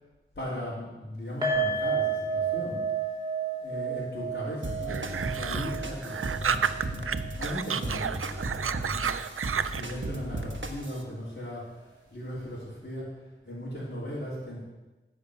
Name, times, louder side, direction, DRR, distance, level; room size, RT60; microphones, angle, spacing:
voice 1, 0.3-2.8 3.6-7.1 7.4-9.1 9.8-13.1 13.4-14.6, equal, 50° left, -8 dB, 3.2 m, -37 dB
sound 1, 1.4-8.6 8.9-9.1 9.4-9.5, right 5 dB, 20° right, 3.3 m, -32 dB
sound 2, 4.6-11.0, right 2 dB, 65° right, 1.2 m, -36 dB
sound 3, 4.9-7.1 7.4-9.9, right 7 dB, 85° right, 0.4 m, -31 dB
10.5 x 5.2 x 8.3 m, 1.1 s
wide cardioid pair, 50°, 21 cm